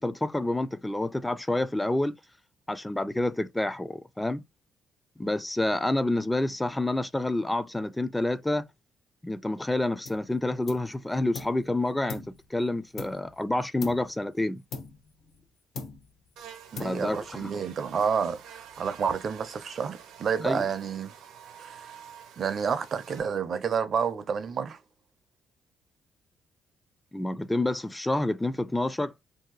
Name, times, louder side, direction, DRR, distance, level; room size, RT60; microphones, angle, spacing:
voice 1, 0.0-2.2 2.7-4.4 5.2-8.7 9.2-14.6 16.8-17.5 20.4-20.6 27.1-29.1, left 2 dB, 10° left, 0.3 m, -28 dB
sound 1, 10.0-10.3 10.7-11.6 12.1-13.4 13.8-14.2 14.7-15.5 15.7-16.3 16.7-17.3, left 4 dB, 65° left, 0.8 m, -41 dB
Buzz, 16.4-23.2, right 8 dB, 85° right, 0.7 m, -48 dB
voice 2, 16.7-21.1 21.6-21.9 22.4-24.8, right 6 dB, 55° right, 0.5 m, -29 dB
2.7 x 2.3 x 3.8 m
cardioid pair, 90°, 0 cm